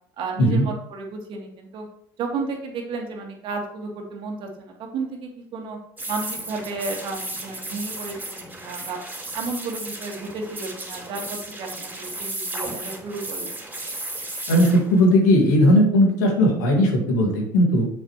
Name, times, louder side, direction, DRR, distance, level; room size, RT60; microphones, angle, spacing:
voice 1, 0.2-1.9 2.2-5.8 6.1-9.0 9.3-11.2 11.6-13.5, right 4 dB, 60° right, 2 dB, 2.0 m, -32 dB
sound 1, 6.0-15.1, right 2 dB, 15° right, 2.7 m, -34 dB
voice 2, 14.5-17.9, equal, 85° left, 2 dB, 1.9 m, -17 dB
7.0 x 6.6 x 3.1 m, 0.66 s
hypercardioid pair, 75°, 10 cm